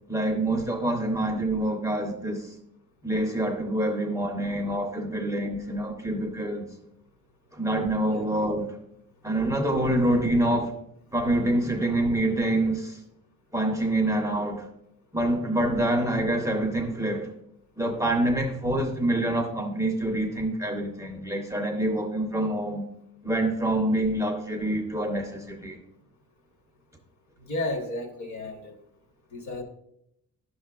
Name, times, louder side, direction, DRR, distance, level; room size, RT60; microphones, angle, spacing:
voice 1, 0.1-2.5 3.0-6.7 7.5-8.7 9.2-10.8 11.1-13.0 13.5-14.7 15.1-17.3 17.8-22.8 23.2-25.8, right 1 dB, 10° right, 3 dB, 0.5 m, -26 dB
voice 2, 27.4-28.7 29.3-29.6, left 2 dB, 55° left, 4 dB, 1.1 m, -33 dB
10.0 x 6.6 x 2.3 m, 0.77 s
cardioid pair, 160°, 35 cm